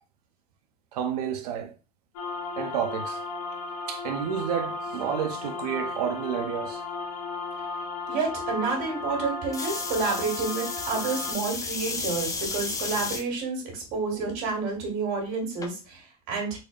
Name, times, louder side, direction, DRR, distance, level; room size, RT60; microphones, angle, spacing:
voice 1, 0.9-1.7 2.6-3.2 3.9-6.8, right 9 dB, 90° right, 0.7 m, -30 dB
sound 1, 2.1-11.3, left 3 dB, 85° left, 1.0 m, -35 dB
voice 2, 8.1-16.6, right 4 dB, 65° right, 2.0 m, -29 dB
sound 2, 9.5-13.2 13.9-14.3 15.6-15.7, left 4 dB, 15° left, 0.6 m, -33 dB
4.1 x 3.3 x 2.4 m
supercardioid pair, 110°, 19 cm